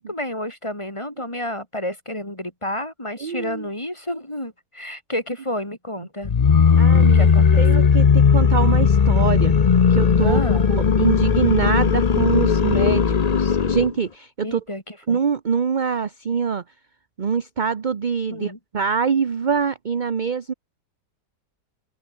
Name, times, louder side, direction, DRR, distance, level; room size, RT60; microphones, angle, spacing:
voice 1, 0.0-6.4 7.1-7.9 10.2-10.7 14.4-15.2 18.3-18.6, left 1 dB, 15° left, 4.8 m, -30 dB
voice 2, 3.2-3.7 6.8-9.6 9.9-14.6 15.1-16.6 17.2-20.5, right 6 dB, 35° right, 0.8 m, -24 dB
sound 1, 6.2-13.9, left 6 dB, 60° left, 0.4 m, -17 dB
open air
omnidirectional pair, 1.8 m